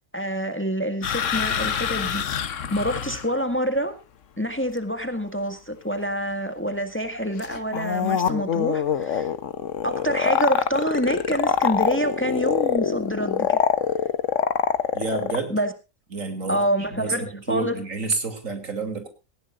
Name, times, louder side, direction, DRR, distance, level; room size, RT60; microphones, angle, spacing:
voice 1, 0.1-2.3 2.7-3.9 4.4-9.3 9.8-13.6 15.5-15.7 16.5-17.8, equal, 10° left, 9 dB, 1.8 m, -26 dB
sound 1, 1.0-3.3 7.4-15.4, left 8 dB, 70° left, 1.4 m, -25 dB
voice 2, 14.9-15.6 16.1-16.6 17.0-19.1, right 3 dB, 80° right, 7 dB, 3.3 m, -29 dB
18.0 x 16.0 x 2.5 m, 0.28 s
omnidirectional pair, 1.4 m